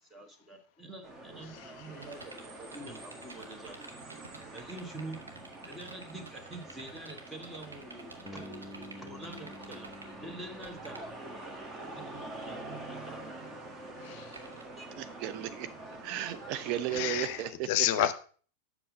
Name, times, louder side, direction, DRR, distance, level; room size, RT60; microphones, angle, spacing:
voice 1, 0.0-3.8 4.5-5.2 5.6-9.9 10.2-11.4 11.8-13.4, right 2 dB, 10° right, 1.6 m, -46 dB
sound 1, 1.0-17.5, right 2 dB, 25° right, 1.5 m, -46 dB
voice 2, 1.5-2.1 14.0-14.4 16.9-18.1, left 12 dB, 50° left, 0.6 m, -31 dB
sound 2, 1.9-10.1 10.4-11.1 14.3-14.6, right 3 dB, 80° right, 1.2 m, -49 dB
Bass guitar, 8.2-12.3, left 1 dB, 20° left, 1.1 m, -50 dB
voice 3, 15.0-15.7 16.0-17.5, right 11 dB, 40° right, 0.5 m, -34 dB
7.7 x 6.2 x 5.1 m
figure-of-eight pair, 90°, 0 cm